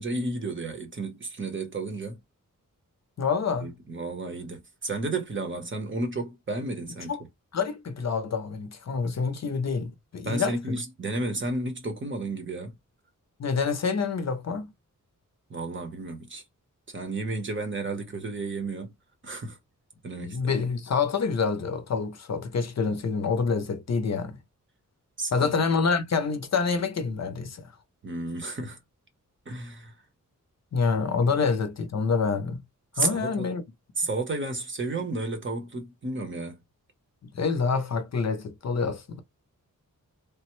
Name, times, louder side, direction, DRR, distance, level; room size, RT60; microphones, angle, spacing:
voice 1, 0.0-2.2 3.5-7.2 10.2-12.8 15.5-16.4 16.9-18.9 19.2-19.6 20.0-20.6 25.2-25.5 28.0-28.8 29.5-29.9 31.2-31.4 32.9-33.5 34.0-36.6, right 2 dB, 35° right, 0.8 m, -32 dB
voice 2, 3.2-3.7 7.1-7.2 7.5-10.8 13.4-14.7 20.2-24.4 25.3-27.6 30.7-32.6 33.0-33.6 37.3-39.2, left 5 dB, 55° left, 0.5 m, -27 dB
3.3 x 2.1 x 3.0 m
wide cardioid pair, 150°, 33 cm